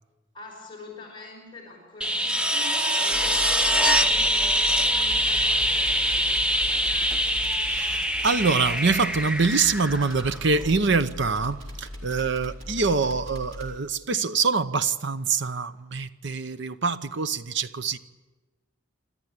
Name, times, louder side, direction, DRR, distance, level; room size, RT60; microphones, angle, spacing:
voice 1, 0.3-7.3, left 2 dB, 25° left, 5.1 m, -44 dB
sound 1, 2.0-10.7 13.0-13.1, equal, 5° right, 0.7 m, -24 dB
sound 2, 3.1-13.7, left 1 dB, 75° right, 4.6 m, -39 dB
voice 2, 7.7-18.0, right 4 dB, 60° right, 0.8 m, -25 dB
27.0 x 13.5 x 10.0 m
head